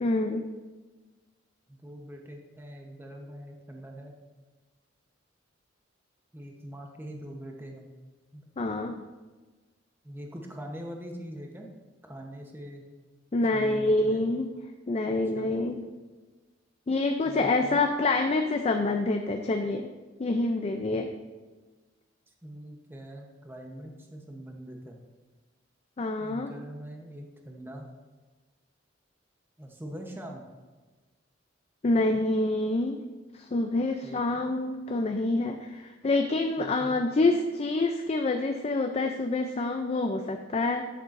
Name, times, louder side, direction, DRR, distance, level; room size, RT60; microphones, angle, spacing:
voice 1, 0.0-0.5 8.6-9.0 13.3-14.5 14.9-15.9 16.9-19.9 20.2-21.1 26.0-26.5 31.8-33.0 33.3-40.8, left 2 dB, 35° left, 5 dB, 0.4 m, -27 dB
voice 2, 1.7-4.1 6.3-7.9 8.3-8.4 10.0-11.7 12.0-12.8 13.5-14.2 15.1-15.6 17.2-17.8 22.4-25.0 26.2-27.9 29.6-30.4 34.0-34.2 36.6-37.0, equal, 10° right, 1 dB, 0.8 m, -43 dB
11.0 x 6.7 x 2.5 m, 1.3 s
head